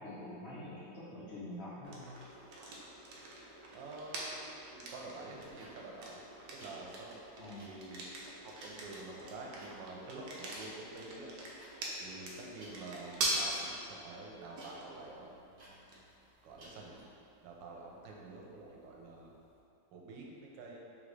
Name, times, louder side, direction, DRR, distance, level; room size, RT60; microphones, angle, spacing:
voice 1, 0.0-2.1 7.4-7.7, left 1 dB, 50° left, -11 dB, 0.8 m, -45 dB
sound 1, 1.8-19.6, right 1 dB, 65° right, 1.0 m, -44 dB
voice 2, 3.7-4.4 4.7-6.2 6.5-7.2 7.6-11.3 12.0-16.0 16.4-17.0 17.4-19.3 19.9-20.8, right 2 dB, 85° right, -2 dB, 1.3 m, -48 dB
sound 2, 5.3-17.0, right 1 dB, 40° right, 0.8 m, -59 dB
3.8 x 3.3 x 3.2 m, 2.7 s
omnidirectional pair, 1.9 m